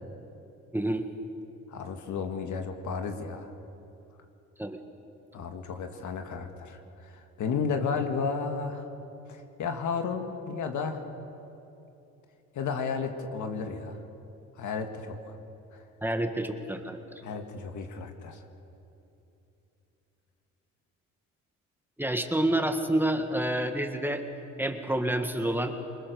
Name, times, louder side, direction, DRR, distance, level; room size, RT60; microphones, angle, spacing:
voice 1, 0.7-1.1 4.6-4.8 16.0-17.2 22.0-24.2 24.6-25.8, right 1 dB, 5° right, 5 dB, 1.9 m, -28 dB
voice 2, 1.7-3.5 5.3-6.8 7.4-8.9 9.3-11.0 12.6-14.0 14.6-15.4 17.2-18.4, left 5 dB, 75° left, 5 dB, 2.1 m, -33 dB
27.5 x 20.0 x 6.9 m, 2.9 s
cardioid pair, 90°, 30 cm